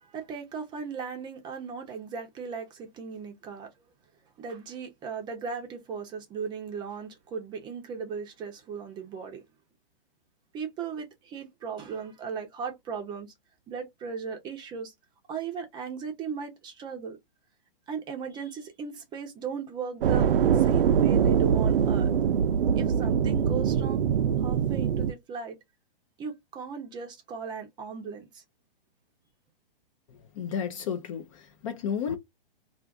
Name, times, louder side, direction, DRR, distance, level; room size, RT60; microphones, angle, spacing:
voice 1, 0.0-3.7 4.4-9.4 10.5-13.3 13.7-14.9 15.3-17.2 17.9-20.3 20.5-22.1 22.8-24.1 24.4-25.6 26.2-28.4, right 6 dB, 15° right, 0.6 m, -37 dB
sound 1, 20.0-25.1, right 8 dB, 70° right, 0.5 m, -23 dB
voice 2, 30.4-32.2, left 7 dB, 35° left, 0.5 m, -32 dB
2.4 x 2.4 x 3.5 m
hypercardioid pair, 140°, 29 cm